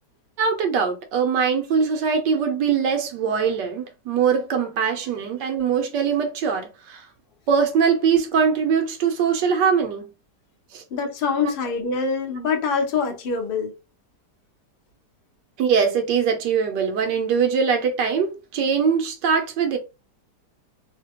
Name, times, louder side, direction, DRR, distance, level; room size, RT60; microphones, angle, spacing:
voice 1, 0.4-7.1 7.5-10.1 10.7-10.8 11.4-11.5 15.6-19.8, right 6 dB, 85° right, 1.3 m, -22 dB
voice 2, 10.9-13.7, left 5 dB, 70° left, 0.5 m, -24 dB
3.1 x 2.2 x 2.8 m
omnidirectional pair, 1.9 m